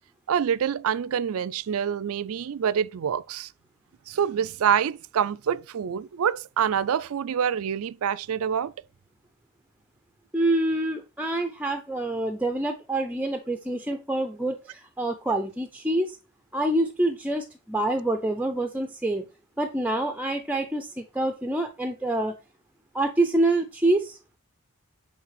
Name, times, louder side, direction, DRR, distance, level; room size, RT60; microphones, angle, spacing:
voice 1, 0.3-3.5 4.1-8.7, right 8 dB, 70° right, 0.4 m, -26 dB
voice 2, 10.3-16.2 16.5-19.2 19.6-22.3 22.9-24.2, right 1 dB, 5° right, 0.5 m, -26 dB
8.5 x 3.3 x 5.7 m
head